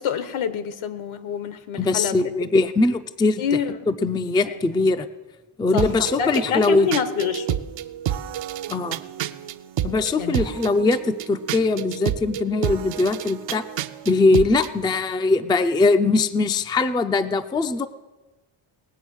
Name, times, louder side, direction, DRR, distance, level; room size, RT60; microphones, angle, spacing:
voice 1, 0.0-2.5 3.4-3.9 4.4-4.6 5.7-5.9 6.2-7.6 10.2-10.6, left 6 dB, 75° left, 13 dB, 1.2 m, -27 dB
voice 2, 1.8-3.4 3.9-5.1 5.6-6.9 8.7-9.0 9.8-13.6 14.1-17.9, left 3 dB, 10° left, 9 dB, 0.4 m, -21 dB
sound 1, 5.8-14.7, right 11 dB, 65° right, 0.6 m, -30 dB
19.5 x 7.9 x 6.3 m, 1.2 s
cardioid pair, 115°, 49 cm